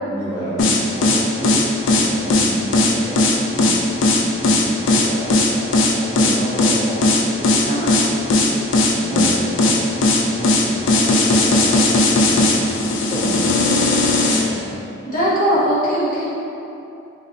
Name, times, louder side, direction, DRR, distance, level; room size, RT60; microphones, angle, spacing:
voice 1, 0.1-9.8 10.1-14.8, right 1 dB, 10° right, -12 dB, 0.8 m, -30 dB
sound 1, 0.6-14.5, left 2 dB, 75° left, 0.4 m, -16 dB
voice 2, 15.0-16.3, equal, 40° left, -10 dB, 0.9 m, -20 dB
3.9 x 3.2 x 2.7 m, 2.7 s
head